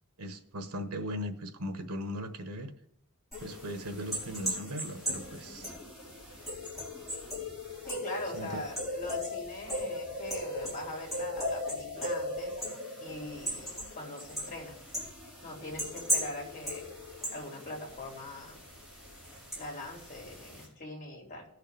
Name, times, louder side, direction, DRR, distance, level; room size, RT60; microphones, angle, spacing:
voice 1, 0.2-2.7 3.4-5.7 8.3-8.6, equal, 85° right, 8 dB, 1.2 m, -38 dB
sound 1, 3.3-20.7, equal, ahead, 5.0 m, -38 dB
voice 2, 5.4-5.8 7.8-12.6 13.0-14.8 15.4-16.9 17.3-18.6 19.6-21.5, left 2 dB, 35° left, -1 dB, 2.9 m, -42 dB
18.5 x 6.6 x 3.5 m, 0.74 s
head